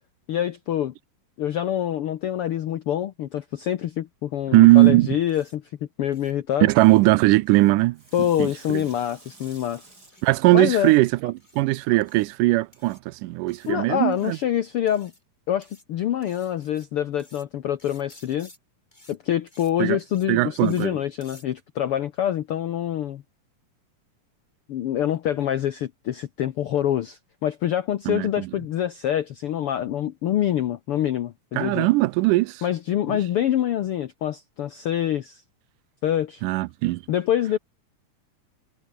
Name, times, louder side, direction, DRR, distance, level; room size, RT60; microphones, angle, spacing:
voice 1, 0.3-0.9 1.4-5.6 6.0-6.7 8.1-9.8 10.5-10.9 13.7-15.1 15.5-18.5 19.1-23.2 24.7-31.9 32.6-35.4 36.0-36.4 37.1-37.6, left 11 dB, 75° left, 1.3 m, -26 dB
voice 2, 4.5-5.2 6.6-8.0 8.4-8.8 10.2-14.4 19.8-20.0 20.3-21.0 28.1-28.5 31.6-32.6 33.1-33.2 36.4-37.0, right 19 dB, 80° right, 2.1 m, -19 dB
sound 1, 4.6-4.9 5.3-5.6 6.1-6.3 6.7-7.0 7.5-7.7 8.1-8.4 8.7-9.0 9.3-9.6 10.0-10.4 10.7-11.0 11.4-11.6 12.0-12.3 12.7-13.0 13.5-13.7 14.1-14.4 14.9-15.2 15.6-15.8 16.2-16.9 17.2-17.5 17.8-18.6 18.9-19.2 19.5-19.7 20.0-20.3 20.6-20.9 21.2-21.5, left 1 dB, 10° left, 5.9 m, -54 dB
Water tap faucet / Sink (filling or washing), 7.9-11.7 12.2-12.3, right 2 dB, 25° right, 6.3 m, -52 dB
omnidirectional pair, 3.8 m